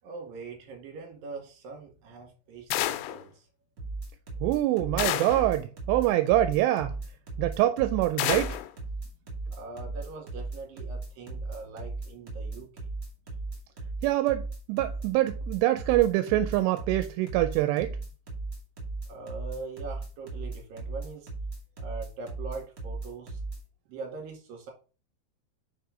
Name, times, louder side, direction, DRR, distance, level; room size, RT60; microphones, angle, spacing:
voice 1, 0.0-3.5 9.5-12.9 19.1-21.3 21.8-23.4 23.9-24.7, right 4 dB, 60° right, 3.6 m, -42 dB
sound 1, 2.7-3.2 5.0-5.5 8.2-8.7, left 14 dB, 85° left, 2.8 m, -29 dB
sound 2, 3.8-23.6, right 3 dB, 35° right, 1.3 m, -36 dB
voice 2, 4.4-6.9 7.4-8.6 14.0-18.0, right 14 dB, 85° right, 2.7 m, -25 dB
6.1 x 4.7 x 5.1 m
omnidirectional pair, 4.9 m